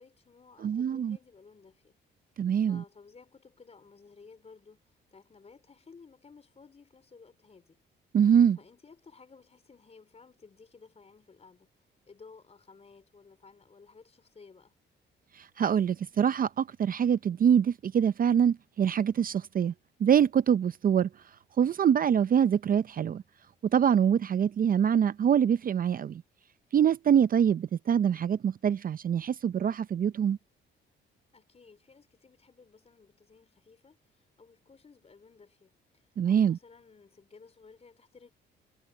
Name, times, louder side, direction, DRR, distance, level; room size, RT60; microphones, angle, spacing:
voice 1, 0.0-1.9 2.7-7.8 8.6-11.7 12.1-14.8 31.3-38.3, left 4 dB, 30° left, 4.0 m, -56 dB
voice 2, 0.6-1.2 2.4-2.8 8.1-8.6 15.4-19.7 20.0-21.1 21.6-23.2 23.7-26.2 26.7-30.4 36.2-36.6, right 8 dB, 45° right, 0.6 m, -24 dB
cardioid pair, 90°, 20 cm